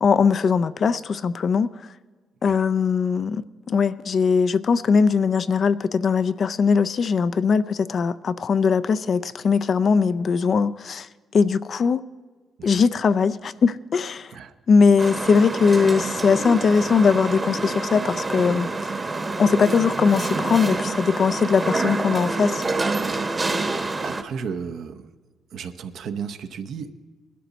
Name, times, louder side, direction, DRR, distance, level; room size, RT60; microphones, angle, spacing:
voice 1, 0.0-1.7 2.4-3.4 3.7-11.1 11.3-12.0 12.6-14.3 14.7-18.9 19.4-22.6, left 5 dB, 50° left, 0.4 m, -20 dB
sound 1, 15.0-24.2, right 3 dB, 25° right, 1.0 m, -27 dB
voice 2, 24.0-25.1 25.5-26.9, right 6 dB, 70° right, 0.8 m, -34 dB
20.0 x 12.0 x 4.1 m
cardioid pair, 90°, 0 cm